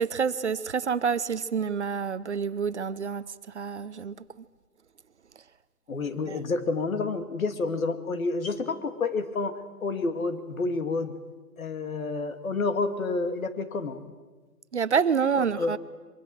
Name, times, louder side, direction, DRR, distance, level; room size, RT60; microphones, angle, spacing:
voice 1, 0.0-3.2 3.5-4.2 6.3-6.4 14.7-15.8, right 6 dB, 45° right, 15 dB, 0.8 m, -27 dB
voice 2, 5.9-9.5 9.8-11.2 11.6-14.0 15.6-15.8, left 3 dB, 60° left, 8 dB, 2.5 m, -29 dB
24.0 x 24.0 x 7.8 m, 1.3 s
hypercardioid pair, 160°, 47 cm